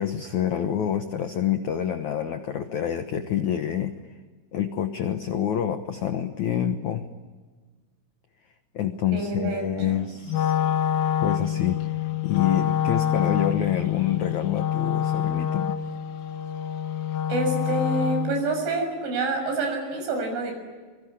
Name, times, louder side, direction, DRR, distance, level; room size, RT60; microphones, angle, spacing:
voice 1, 0.0-3.9 4.5-7.1 8.7-10.6 11.2-15.8, left 10 dB, 85° left, 8 dB, 1.6 m, -27 dB
voice 2, 9.1-10.0 17.3-20.5, right 3 dB, 85° right, 5 dB, 8.9 m, -27 dB
Wind instrument woodwind instrument, 10.3-18.5, left 10 dB, 70° left, 2.5 m, -26 dB
26.5 x 23.0 x 10.0 m, 1.4 s
omnidirectional pair, 5.3 m